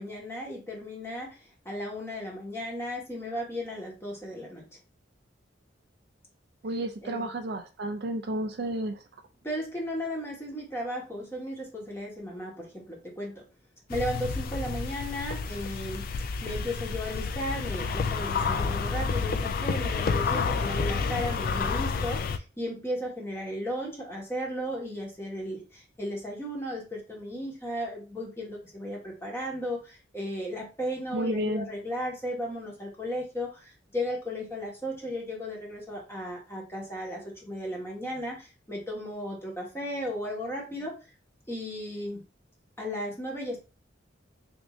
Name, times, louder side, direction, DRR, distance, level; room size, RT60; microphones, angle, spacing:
voice 1, 0.0-4.6 7.0-7.2 9.4-13.4 13.9-40.9 41.5-42.2 42.8-43.6, equal, 15° left, -2 dB, 1.2 m, -35 dB
voice 2, 6.6-9.0 31.1-31.7, right 1 dB, 55° right, 6 dB, 0.4 m, -31 dB
sound 1, 13.9-22.4, left 5 dB, 50° left, 0.3 m, -29 dB
3.6 x 2.7 x 3.1 m, 0.31 s
head